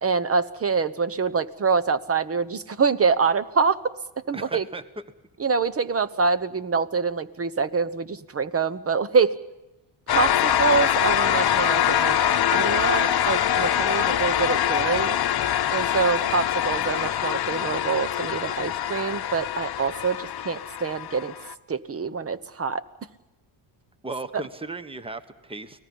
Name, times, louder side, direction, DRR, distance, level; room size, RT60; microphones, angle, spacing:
voice 1, 0.0-3.9 4.3-4.6 5.4-9.3 10.1-12.2 12.5-15.2 15.7-21.3 21.7-22.8, right 5 dB, 30° right, 15 dB, 1.1 m, -25 dB
voice 2, 4.3-4.8 16.5-16.6 24.0-25.8, right 2 dB, 10° right, 12 dB, 1.3 m, -36 dB
sound 1, 10.1-21.5, left 10 dB, 50° left, 1.1 m, -24 dB
30.0 x 19.5 x 5.5 m, 1.0 s
cardioid pair, 95°, 49 cm